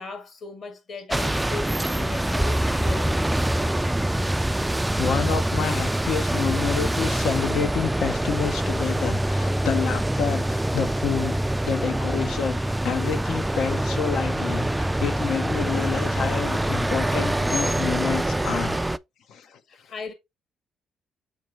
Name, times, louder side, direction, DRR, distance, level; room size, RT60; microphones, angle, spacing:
voice 1, 0.0-3.4 19.7-20.1, left 3 dB, 55° left, 2.0 m, -37 dB
sound 1, 1.1-19.0, right 1 dB, 10° right, 0.3 m, -25 dB
voice 2, 5.0-18.8 19.3-19.6, left 7 dB, 75° left, 0.8 m, -29 dB
6.5 x 4.6 x 3.2 m
cardioid pair, 90°, 0 cm